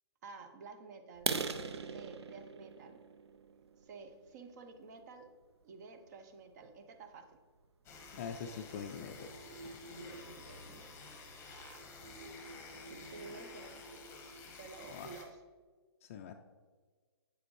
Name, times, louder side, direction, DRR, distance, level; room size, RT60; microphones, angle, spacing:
voice 1, 0.2-1.3 1.9-3.0 3.8-5.3 5.6-7.4 9.9-10.9 11.4-11.8 12.9-13.8 14.5-15.4, right 4 dB, 40° right, 7 dB, 0.8 m, -51 dB
sound 1, 1.1-4.9 5.4-5.6 6.1-6.2 6.6-6.8 7.1-7.2 7.6-7.7 8.0-8.5, right 5 dB, 75° right, 0.5 m, -40 dB
sound 2, 7.8-15.2, left 2 dB, 15° left, 0.9 m, -50 dB
voice 2, 8.1-9.6 14.9-15.1 16.0-16.3, left 7 dB, 30° left, 6 dB, 0.3 m, -44 dB
8.2 x 4.9 x 3.2 m, 1.5 s
figure-of-eight pair, 135°, 14 cm